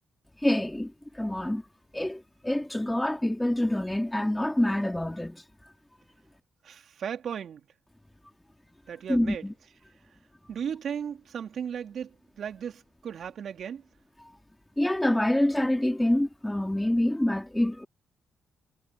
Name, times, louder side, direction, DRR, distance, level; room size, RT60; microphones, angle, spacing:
voice 1, 0.4-1.6 1.9-5.4 9.1-9.5 14.8-17.8, left 1 dB, 10° left, 3.5 m, -26 dB
voice 2, 6.6-7.7 8.9-9.5 10.5-13.8, right 8 dB, 65° right, 3.3 m, -36 dB
supercardioid pair, 55°, 0 cm